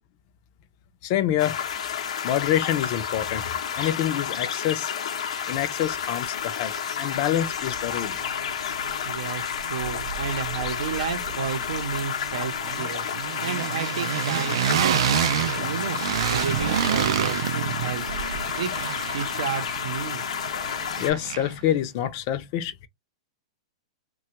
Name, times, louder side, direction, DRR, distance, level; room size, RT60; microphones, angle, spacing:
voice 1, 1.0-1.6 2.2-3.4 3.8-4.9 5.5-8.2 21.0-22.9, left 11 dB, 30° left, 0.4 m, -26 dB
sound 1, 1.4-21.1, left 8 dB, 80° left, 0.6 m, -31 dB
sound 2, 7.8-7.9 8.1-9.2 9.5-21.7, right 10 dB, 55° right, 0.3 m, -29 dB
voice 2, 9.1-18.7 19.1-20.2, right 7 dB, 80° right, 0.7 m, -32 dB
3.2 x 2.2 x 2.9 m
supercardioid pair, 175°, 3 cm